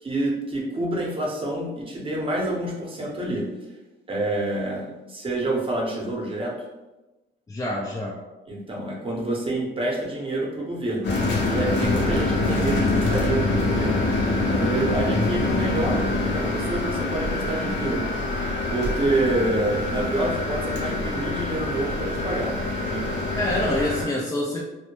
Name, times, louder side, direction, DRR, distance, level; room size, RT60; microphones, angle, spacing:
voice 1, 0.0-3.4 4.1-6.5 8.5-14.0 14.5-23.0, right 1 dB, 25° right, -2 dB, 0.7 m, -28 dB
voice 2, 7.5-8.2 23.3-24.6, left 1 dB, 15° left, -4 dB, 0.3 m, -26 dB
sound 1, 11.0-24.1, left 2 dB, 65° left, 0.7 m, -25 dB
2.1 x 2.1 x 2.9 m, 1.1 s
cardioid pair, 90°, 20 cm